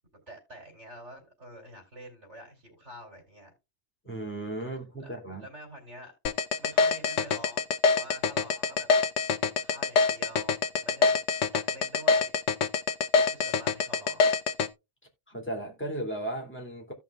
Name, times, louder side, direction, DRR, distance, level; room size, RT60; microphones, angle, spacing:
voice 1, 0.3-3.5 5.0-6.1 6.6-8.9 9.4-11.2 11.5-12.3 13.1-14.3, right 1 dB, 85° right, 3.6 m, -47 dB
voice 2, 4.0-5.5 15.3-16.9, right 1 dB, 10° left, 2.5 m, -35 dB
sound 1, 6.3-14.7, left 5 dB, 85° left, 1.1 m, -24 dB
16.0 x 5.8 x 2.3 m
omnidirectional pair, 1.2 m